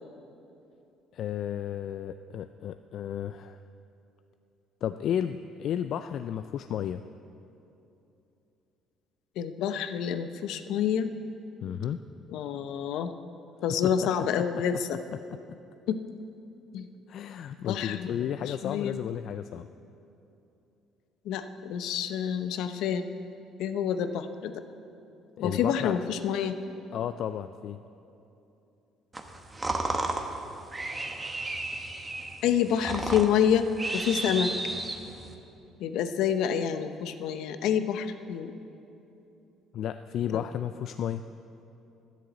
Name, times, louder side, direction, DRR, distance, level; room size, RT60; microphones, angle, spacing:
voice 1, 1.1-3.6 4.8-7.0 11.6-12.0 13.8-14.1 14.5-14.8 15.3-15.4 17.1-19.7 25.4-26.0 26.9-27.8 39.7-41.2, left 9 dB, 55° left, 10 dB, 0.3 m, -33 dB
voice 2, 9.4-11.1 12.3-13.1 13.6-15.0 15.9-16.0 16.7-16.9 17.7-19.0 21.3-23.1 23.6-24.6 25.4-26.6 32.4-34.5 35.8-38.5 40.3-40.4, left 8 dB, 75° left, 10 dB, 0.7 m, -28 dB
sound 1, 29.1-35.3, right 2 dB, 15° right, 1.0 m, -33 dB
11.0 x 10.5 x 8.0 m, 2.8 s
cardioid pair, 135°, 0 cm